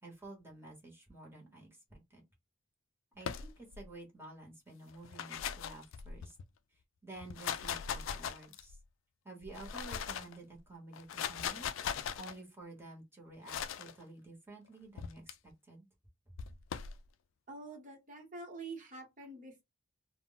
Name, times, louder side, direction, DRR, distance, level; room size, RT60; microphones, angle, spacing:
voice 1, 0.0-2.2 3.1-6.4 7.0-8.8 9.2-11.7 12.1-15.8, right 2 dB, 10° right, 0.9 m, -51 dB
sound 1, 3.2-3.9 4.9-6.4 7.2-8.8 9.4-10.4 10.9-12.3 13.5-13.9 15.0-15.3 16.4-17.0, left 8 dB, 65° left, 0.3 m, -39 dB
voice 2, 17.5-19.6, right 3 dB, 40° right, 0.9 m, -46 dB
2.1 x 2.0 x 3.7 m
head